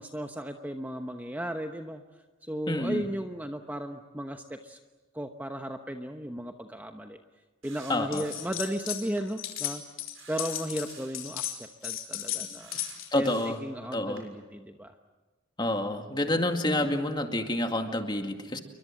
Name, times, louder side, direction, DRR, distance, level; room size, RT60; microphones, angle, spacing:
voice 1, 0.0-2.0 2.4-4.8 5.1-7.2 7.6-9.8 10.3-12.8 13.1-14.9 16.7-16.9, equal, 10° right, 5 dB, 1.0 m, -35 dB
voice 2, 2.7-3.0 7.9-8.3 13.1-13.6 13.9-14.2 15.6-18.6, left 1 dB, 20° left, 5 dB, 2.2 m, -28 dB
sound 1, 7.6-8.7 9.2-9.3 10.1-11.2 12.6-13.7 14.2-14.3, right 6 dB, 85° right, 6.7 m, -51 dB
sound 2, 8.1-9.0 9.3-13.2, left 12 dB, 80° left, 4.0 m, -35 dB
29.5 x 23.0 x 7.5 m, 1.2 s
head